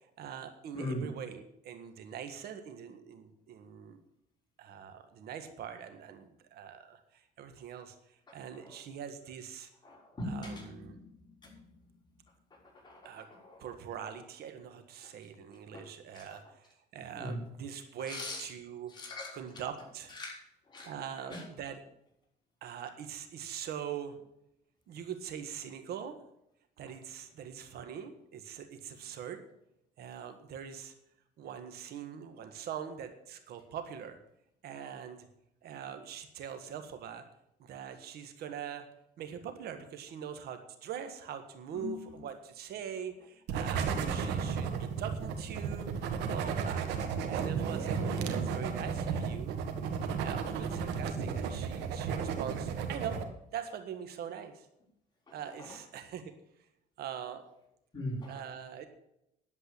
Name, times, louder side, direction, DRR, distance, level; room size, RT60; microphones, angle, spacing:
voice 1, 0.0-4.0 4.6-9.7 10.2-11.0 13.0-13.3 13.6-18.9 19.3-20.1 20.8-21.8 22.6-24.2 24.9-26.2 26.8-29.4 30.0-30.9 31.4-34.2 34.6-35.3 35.6-37.3 37.6-38.9 39.2-46.9 47.2-49.6 50.2-53.2 53.5-54.7 55.3-56.3 57.0-57.5 58.3-58.9, right 8 dB, 70° right, 8 dB, 1.6 m, -43 dB
voice 2, 9.8-10.6 10.9-11.1 11.4-11.6 12.8-13.0 13.5-13.6 15.7-15.8 16.1-16.2 17.2-17.4 18.1-18.4 18.9-19.3 20.2-20.3 20.7-20.9 21.3-21.4 41.7-41.9 57.9-58.3, left 1 dB, 25° left, -3 dB, 6.0 m, -39 dB
sound 1, 43.5-53.2, right 6 dB, 90° right, 1.6 m, -34 dB
11.0 x 7.9 x 8.4 m, 0.80 s
cardioid pair, 110°, 17 cm